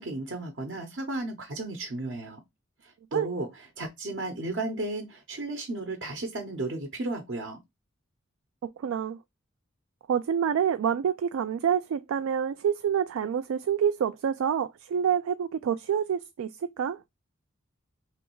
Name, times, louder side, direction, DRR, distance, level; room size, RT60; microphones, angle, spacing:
voice 1, 0.0-2.4 2.8-7.6, right 2 dB, 60° right, 0.8 m, -34 dB
voice 2, 8.6-9.2 10.1-17.0, right 8 dB, 85° right, 0.3 m, -27 dB
3.3 x 3.1 x 4.5 m
head